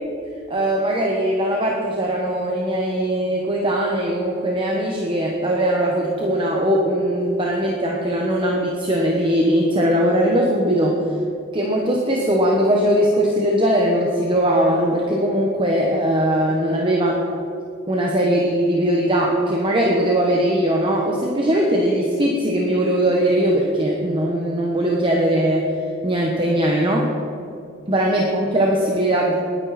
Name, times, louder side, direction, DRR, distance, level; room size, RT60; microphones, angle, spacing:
voice 1, 0.5-11.0 11.5-17.4 17.9-25.7 26.0-27.1 27.9-29.4, right 1 dB, 25° right, -1 dB, 1.2 m, -20 dB
19.5 x 9.9 x 4.3 m, 2.7 s
head